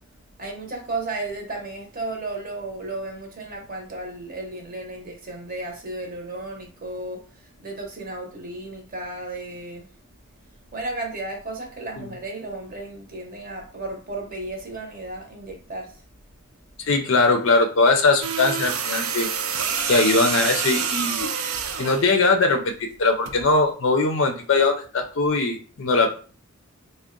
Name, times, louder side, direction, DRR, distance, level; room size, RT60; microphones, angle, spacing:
voice 1, 0.4-9.9 10.7-16.0, right 2 dB, 40° right, 0.7 m, -34 dB
voice 2, 16.8-19.3 19.9-21.3 21.8-26.1, left 3 dB, 60° left, 0.4 m, -20 dB
sound 1, 18.2-22.1 23.3-23.5, right 7 dB, 70° right, 0.4 m, -27 dB
3.6 x 2.1 x 3.7 m
head